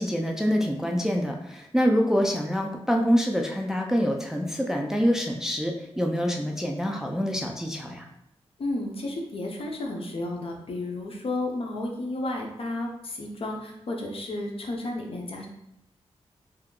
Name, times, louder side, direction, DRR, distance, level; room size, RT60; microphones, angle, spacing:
voice 1, 0.0-8.1, equal, 5° right, 1 dB, 0.3 m, -26 dB
voice 2, 8.6-15.5, left 2 dB, 60° left, 1 dB, 0.6 m, -32 dB
2.7 x 2.2 x 3.6 m, 0.81 s
wide cardioid pair, 115°, 11 cm